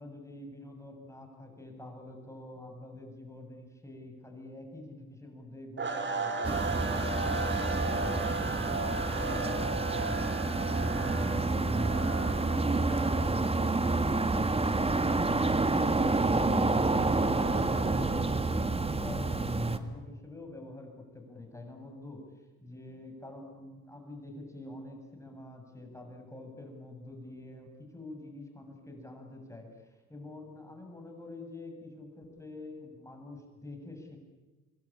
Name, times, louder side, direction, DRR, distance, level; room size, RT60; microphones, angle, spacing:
voice 1, 0.0-8.3 8.8-16.7 17.1-22.2 22.6-34.2, left 2 dB, 10° left, 3 dB, 7.3 m, -46 dB
sound 1, 5.8-18.1, right 3 dB, 40° right, 4.1 m, -37 dB
sound 2, 6.4-19.8, right 3 dB, 20° right, 2.0 m, -29 dB
27.0 x 22.0 x 8.7 m, 1.2 s
cardioid pair, 90°, 30 cm